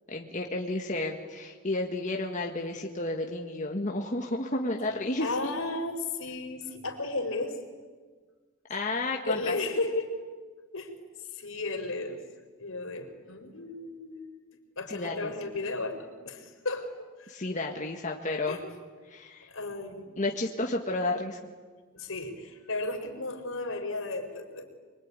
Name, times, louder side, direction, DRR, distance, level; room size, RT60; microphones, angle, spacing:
voice 1, 0.1-5.5 8.7-9.5 14.9-15.3 17.3-18.6 19.1-19.5 20.2-21.4, left 2 dB, 35° left, 1 dB, 1.8 m, -32 dB
voice 2, 5.2-7.6 9.2-10.1 10.7-12.2 12.6-14.3 14.8-17.4 18.5-18.6 19.5-20.3 21.9-24.7, left 2 dB, 75° left, 3 dB, 4.5 m, -34 dB
24.0 x 23.5 x 9.8 m, 1.5 s
head